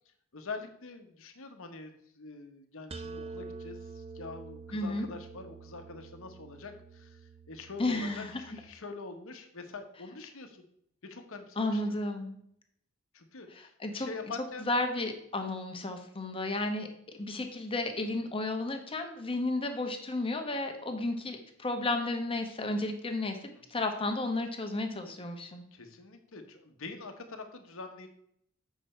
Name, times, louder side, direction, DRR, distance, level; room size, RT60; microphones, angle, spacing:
voice 1, 0.3-10.6 11.0-11.8 13.1-14.7 25.7-28.1, left 3 dB, 65° left, 6 dB, 1.1 m, -45 dB
sound 1, 2.9-8.7, right 4 dB, 30° right, 0.5 m, -47 dB
voice 2, 4.7-5.1 7.8-8.4 11.6-12.4 13.6-14.1 14.7-16.9 17.1-25.6, left 2 dB, 25° left, 5 dB, 1.1 m, -33 dB
7.7 x 5.8 x 4.3 m, 0.70 s
head